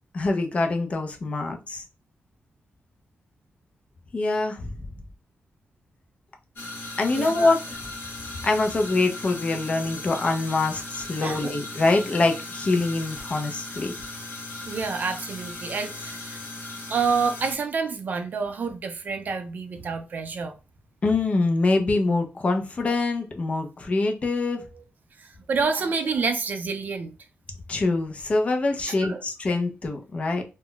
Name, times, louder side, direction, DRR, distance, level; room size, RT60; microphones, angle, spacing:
voice 1, 0.1-1.8 4.1-4.7 7.0-7.6 8.4-13.9 21.0-24.6 27.7-30.4, left 3 dB, 30° left, 0.4 m, -24 dB
sound 1, 6.6-17.6, left 2 dB, 70° left, 0.9 m, -37 dB
voice 2, 7.1-7.6 11.2-11.5 14.7-16.4 16.9-20.6 24.6-24.8 25.2-27.2 28.9-29.2, right 5 dB, 45° right, 0.4 m, -28 dB
2.2 x 2.0 x 3.7 m
wide cardioid pair, 165°, 4 cm